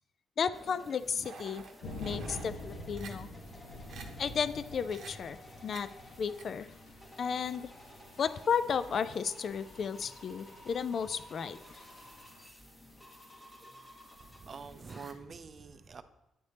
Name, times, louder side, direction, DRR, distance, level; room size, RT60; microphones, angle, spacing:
voice 1, 0.4-1.6 2.0-3.3 4.2-5.4 5.6-5.9 6.2-6.7 7.2-7.7 8.2-11.6, left 6 dB, 55° left, 14 dB, 0.3 m, -33 dB
sound 1, 0.5-15.1, equal, 15° left, 1.2 m, -54 dB
sound 2, 1.2-2.5 3.0-3.1 3.6-3.7 3.9-4.1 4.9-5.1 5.7-5.8 6.4-6.5, right 6 dB, 65° right, 0.8 m, -48 dB
sound 3, 1.8-12.5, left 1 dB, 70° left, 1.2 m, -48 dB
voice 2, 14.4-16.0, right 5 dB, 40° right, 11 dB, 0.5 m, -46 dB
9.4 x 3.3 x 4.1 m, 0.94 s
cardioid pair, 90°, 0 cm